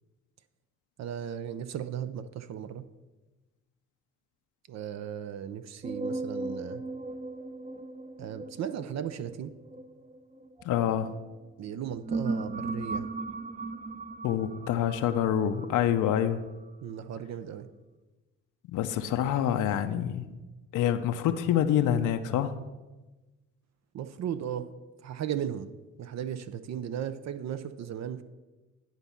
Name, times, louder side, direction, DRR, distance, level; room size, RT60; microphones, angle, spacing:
voice 1, 1.0-2.9 4.7-6.8 8.2-9.5 11.6-13.1 16.8-17.7 23.9-24.7 25.0-25.7 26.0-28.2, right 9 dB, 60° right, 11 dB, 0.6 m, -36 dB
sound 1, 5.8-11.1 11.7-16.7, right 3 dB, 25° right, 0.7 m, -37 dB
voice 2, 10.6-11.1 14.2-16.4 18.7-20.3 20.7-22.5, left 10 dB, 85° left, 8 dB, 0.6 m, -26 dB
10.5 x 4.0 x 7.0 m, 1.2 s
cardioid pair, 90°, 30 cm